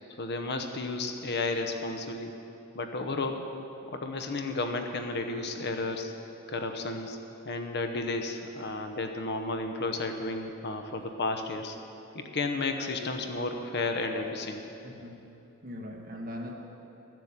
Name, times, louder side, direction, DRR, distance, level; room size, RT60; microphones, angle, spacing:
voice 1, 0.2-2.3 2.7-3.5 3.9-6.1 6.5-7.2 7.4-11.8 12.1-14.6, left 3 dB, 55° left, 5 dB, 0.9 m, -32 dB
voice 2, 14.8-15.2 15.6-16.5, left 1 dB, 45° right, 0 dB, 1.5 m, -40 dB
12.5 x 7.7 x 7.4 m, 2.9 s
head